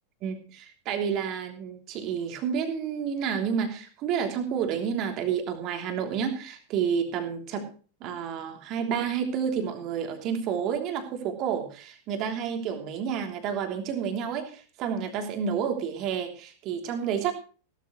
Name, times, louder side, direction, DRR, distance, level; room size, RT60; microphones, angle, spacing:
voice 1, 0.8-7.6 8.0-17.3, right 7 dB, 40° right, 5 dB, 3.1 m, -30 dB
17.0 x 13.0 x 3.1 m, 0.37 s
figure-of-eight pair, 90°, 0 cm